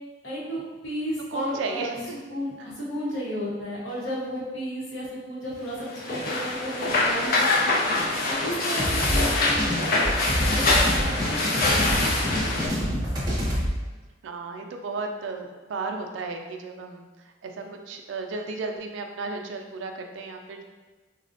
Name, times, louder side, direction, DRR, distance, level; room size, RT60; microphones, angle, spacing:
voice 1, 0.2-2.0 2.3-7.7 8.3-10.7 10.9-11.8 12.3-12.5 13.0-13.3, equal, 75° left, -6 dB, 0.9 m, -33 dB
voice 2, 1.3-2.2 11.2-12.6 14.2-20.6, right 3 dB, 70° right, 4 dB, 0.3 m, -35 dB
sound 1, 5.9-12.7, left 2 dB, 50° left, 0.5 m, -24 dB
sound 2, 8.8-13.7, equal, 20° right, 0.6 m, -27 dB
3.8 x 2.1 x 2.6 m, 1.2 s
head